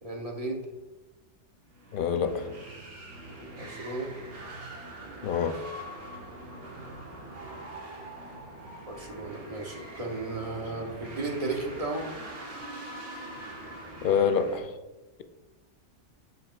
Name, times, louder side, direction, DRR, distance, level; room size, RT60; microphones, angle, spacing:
voice 1, 0.0-0.6 3.6-4.1 8.9-12.1, right 2 dB, 35° right, 2 dB, 0.9 m, -34 dB
sound 1, 1.7-14.6, right 1 dB, 85° right, 1.7 m, -43 dB
voice 2, 1.9-2.4 5.2-5.6 14.0-14.7, left 7 dB, 60° left, 9 dB, 0.6 m, -26 dB
10.5 x 5.0 x 2.4 m, 1.1 s
omnidirectional pair, 1.2 m